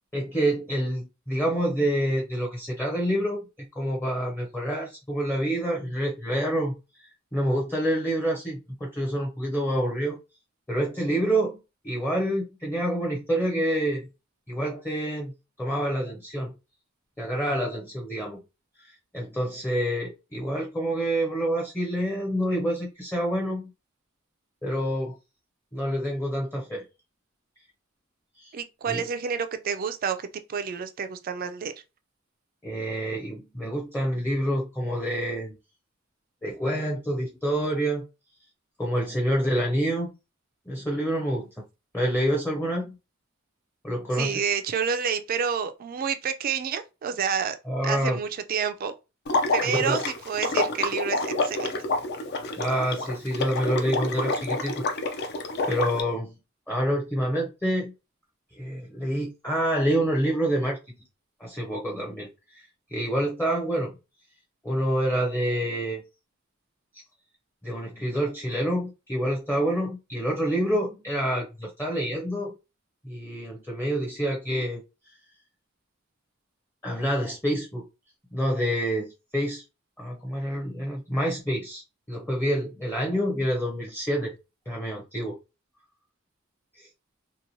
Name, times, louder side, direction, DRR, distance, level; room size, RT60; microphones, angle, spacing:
voice 1, 0.1-3.4 3.7-6.8 7.3-10.2 10.7-11.6 11.8-14.1 14.5-15.3 15.6-16.5 17.2-18.4 18.8-23.7 24.6-25.2 25.7-26.8 28.4-28.5 28.9-29.0 32.6-35.6 36.4-38.0 38.8-40.1 40.7-41.5 41.9-43.0 43.8-44.4 47.6-48.2 49.6-50.0 52.6-54.8 55.7-56.3 56.7-57.9 58.5-60.9 61.4-62.3 62.5-62.6 62.9-64.0 64.6-66.0 67.6-72.5 73.0-74.8 76.8-77.9 78.3-79.6 80.0-81.8 82.1-84.3 84.7-85.4 86.8-86.9, equal, 10° left, 0.6 m, -27 dB
voice 2, 28.5-31.7 41.4-41.5 44.2-47.6 47.8-48.9 49.5-51.7, right 7 dB, 45° right, 0.3 m, -29 dB
Water / Liquid, 49.3-56.0, left 2 dB, 55° left, 0.4 m, -28 dB
2.9 x 2.2 x 2.5 m
head